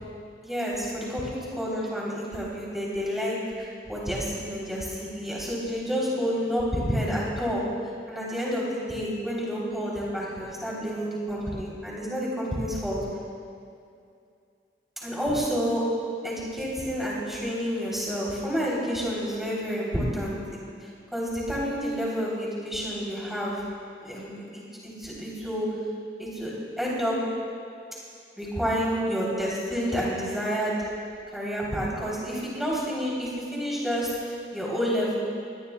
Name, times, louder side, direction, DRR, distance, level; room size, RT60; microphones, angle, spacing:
voice 1, 0.4-7.6 8.1-13.0 15.0-15.9 16.2-20.6 21.1-23.6 24.0-25.7 26.2-26.5 26.8-27.2 28.4-30.8 31.3-35.2, equal, ahead, -6 dB, 3.6 m, -29 dB
24.0 x 19.0 x 2.4 m, 2.4 s
head